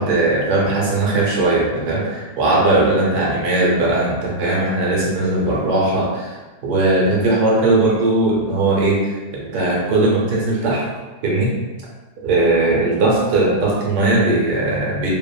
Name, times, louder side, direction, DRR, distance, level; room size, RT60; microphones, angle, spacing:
voice 1, 0.0-6.4 6.6-10.9 11.2-11.5 12.2-15.1, right 2 dB, 75° right, -4 dB, 1.2 m, -18 dB
2.7 x 2.5 x 2.3 m, 1.2 s
omnidirectional pair, 1.7 m